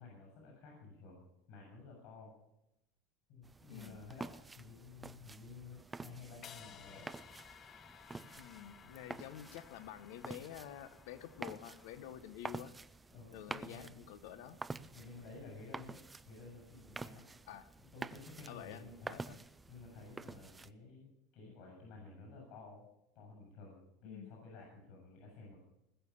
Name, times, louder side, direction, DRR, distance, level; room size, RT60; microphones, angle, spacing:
voice 1, 0.0-2.3 3.3-7.1 13.1-14.0 14.9-16.0 16.2-17.2 17.8-22.9 23.1-25.6, left 3 dB, 60° left, -1 dB, 7.1 m, -53 dB
sound 1, 3.4-20.7, right 3 dB, 10° right, 0.5 m, -49 dB
voice 2, 3.7-4.0 8.4-12.7 13.3-14.6 17.5-17.7 18.5-18.8 19.1-19.4 24.0-24.3, left 11 dB, 75° left, 12 dB, 1.1 m, -49 dB
sound 2, 6.4-12.6, left 8 dB, 35° left, 0.7 m, -58 dB
20.5 x 6.9 x 7.1 m, 0.88 s
supercardioid pair, 130°, 0 cm